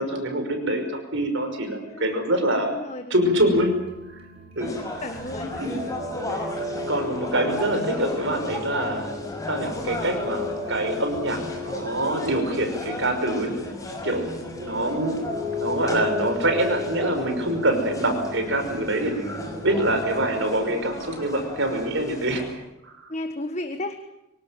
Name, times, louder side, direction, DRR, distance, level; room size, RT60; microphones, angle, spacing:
voice 1, 0.0-2.7 3.1-3.7 4.1-4.2 4.6-5.0 5.6-5.8 6.9-9.1 9.5-13.5 14.0-15.2 15.5-22.4 22.8-23.0, right 1 dB, 55° right, 6 dB, 5.6 m, -25 dB
voice 2, 2.5-3.2 4.6-5.6 22.0-22.2 23.1-24.1, left 1 dB, 30° left, 7 dB, 1.5 m, -34 dB
sound 1, 3.4-20.2, left 4 dB, 25° right, 5.6 m, -36 dB
sound 2, 4.6-22.5, left 1 dB, 15° left, 5.3 m, -35 dB
25.0 x 18.0 x 9.3 m, 0.91 s
head